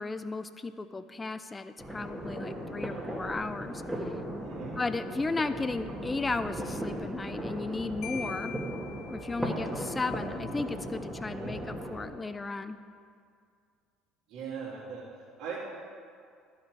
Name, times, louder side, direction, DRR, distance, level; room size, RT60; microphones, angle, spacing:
voice 1, 0.0-3.8 4.8-8.5 9.1-12.8, left 3 dB, 20° left, 12 dB, 0.5 m, -35 dB
sound 1, 1.8-12.1, equal, 5° right, 1.8 m, -37 dB
voice 2, 4.4-4.8 9.3-9.6 11.2-11.6 14.3-15.6, right 6 dB, 60° right, -4 dB, 2.5 m, -41 dB
Marimba xylophone, 8.0-9.8, left 8 dB, 65° left, 0.7 m, -43 dB
12.0 x 5.9 x 4.7 m, 2.2 s
hypercardioid pair, 65°, 0 cm